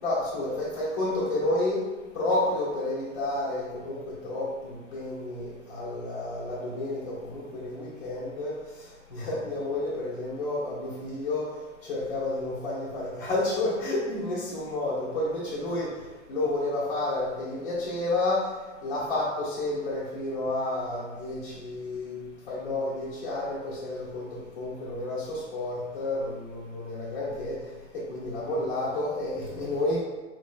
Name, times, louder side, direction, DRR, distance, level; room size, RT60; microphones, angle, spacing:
voice 1, 0.0-8.6 9.1-11.6 11.8-15.9 16.3-18.5 18.8-22.2 22.5-27.6 27.9-30.0, left 2 dB, 50° left, -8 dB, 1.0 m, -30 dB
4.3 x 3.1 x 2.3 m, 1.2 s
figure-of-eight pair, 105°, 38 cm